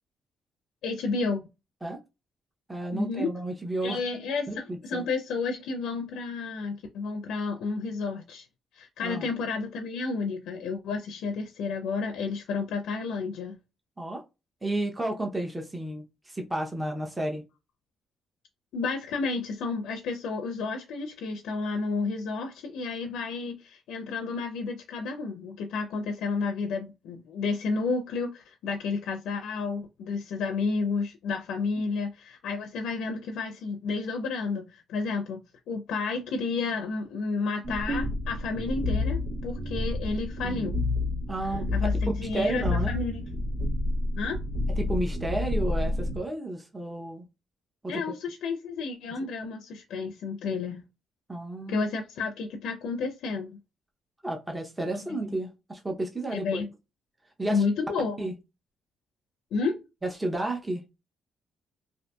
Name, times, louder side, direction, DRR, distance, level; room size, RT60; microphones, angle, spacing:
voice 1, 0.8-1.5 2.9-3.3 3.8-8.5 8.7-13.6 18.7-40.8 41.7-43.2 44.2-44.4 47.9-50.8 51.7-53.5 56.3-56.7 57.5-58.2 59.5-59.8, left 4 dB, 85° left, 0.4 m, -31 dB
voice 2, 2.7-4.0 4.5-5.1 9.0-9.3 14.0-14.2 14.6-17.4 41.3-41.7 42.3-43.0 44.8-47.3 47.8-48.0 51.3-51.8 54.2-56.6 57.4-57.6 58.2-58.3 60.0-60.8, right 1 dB, 15° right, 0.6 m, -32 dB
sound 1, 37.6-46.2, left 2 dB, 75° right, 1.0 m, -29 dB
2.6 x 2.5 x 2.2 m
cardioid pair, 90°, 0 cm